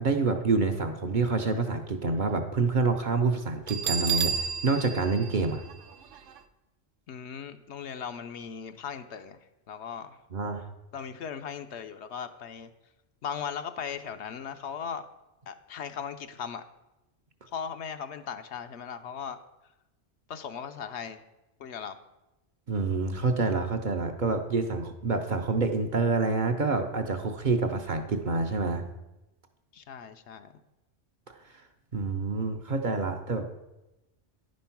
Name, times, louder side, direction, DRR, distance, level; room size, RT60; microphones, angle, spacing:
voice 1, 0.0-5.6 10.3-10.6 22.7-28.9 31.3-31.4 31.9-33.5, right 3 dB, 50° right, 5 dB, 0.7 m, -27 dB
Bell, 3.7-6.4, right 7 dB, 85° right, 0.9 m, -32 dB
voice 2, 7.1-9.4 9.7-10.2 10.9-12.7 13.2-15.1 15.5-16.6 17.5-19.4 20.3-21.2 21.6-22.0 29.7-30.5, left 7 dB, 70° left, 9 dB, 0.9 m, -38 dB
10.0 x 5.3 x 5.7 m, 0.98 s
omnidirectional pair, 1.3 m